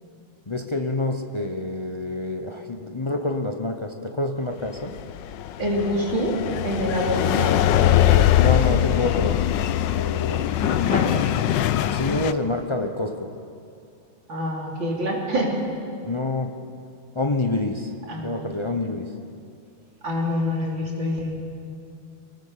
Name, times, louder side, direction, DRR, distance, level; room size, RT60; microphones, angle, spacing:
voice 1, 0.5-5.0 8.3-9.5 9.9-10.5 11.9-13.4 16.0-16.6 17.1-18.0 18.2-19.2, left 2 dB, 50° left, 4 dB, 0.3 m, -27 dB
sound 1, 4.8-12.3, left 12 dB, 70° left, 1.2 m, -21 dB
voice 2, 5.6-6.4 6.6-7.5 10.5-11.2 14.3-15.6 18.1-18.4 20.0-21.3, equal, 65° right, -2 dB, 3.9 m, -26 dB
24.0 x 19.0 x 6.8 m, 2.4 s
omnidirectional pair, 2.3 m